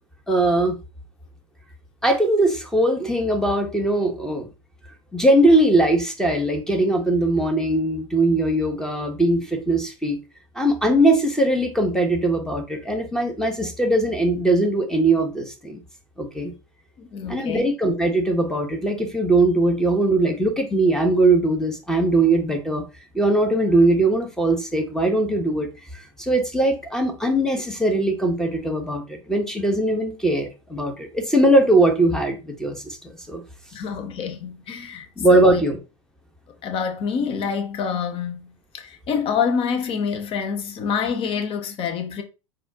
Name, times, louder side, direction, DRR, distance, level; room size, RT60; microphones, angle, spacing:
voice 1, 0.3-0.8 2.0-4.5 5.1-10.2 10.6-15.8 16.2-16.5 17.3-22.8 23.1-25.7 25.9-33.4 35.2-35.8, right 1 dB, 5° left, 1.0 m, -20 dB
voice 2, 17.0-17.7 33.7-35.6 36.6-42.2, left 6 dB, 35° left, 0.7 m, -27 dB
4.0 x 2.5 x 2.8 m
hypercardioid pair, 90°, 17 cm